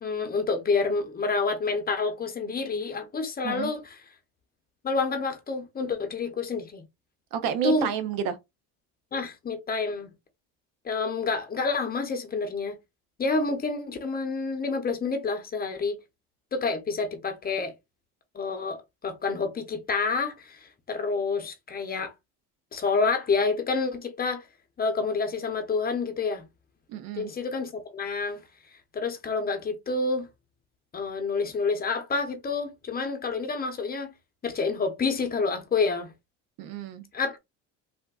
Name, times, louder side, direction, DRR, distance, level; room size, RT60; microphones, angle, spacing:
voice 1, 0.0-3.8 4.8-6.8 7.6-7.9 9.1-10.1 10.8-12.8 13.2-16.0 16.5-17.7 18.3-22.1 22.7-24.4 24.8-26.4 27.1-28.4 28.9-30.3 30.9-34.1 34.4-36.1 37.1-37.4, left 4 dB, 25° left, 0.8 m, -28 dB
voice 2, 7.3-8.4 26.9-27.3 36.6-37.0, right 8 dB, 65° right, 0.7 m, -30 dB
3.4 x 2.5 x 2.3 m
supercardioid pair, 100°, 37 cm